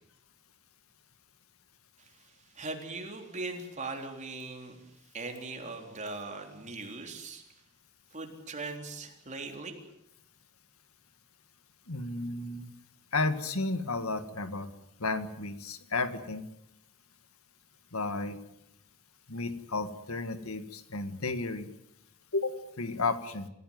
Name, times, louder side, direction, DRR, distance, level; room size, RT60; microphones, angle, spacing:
voice 1, 2.0-4.8 5.1-7.4 8.1-9.8, right 3 dB, 35° right, 3 dB, 3.8 m, -40 dB
voice 2, 11.9-12.7 13.1-14.7 15.0-16.5 17.9-18.4 19.3-21.7 22.3-23.5, left 3 dB, 75° left, 10 dB, 1.9 m, -33 dB
28.0 x 16.5 x 9.4 m, 0.82 s
head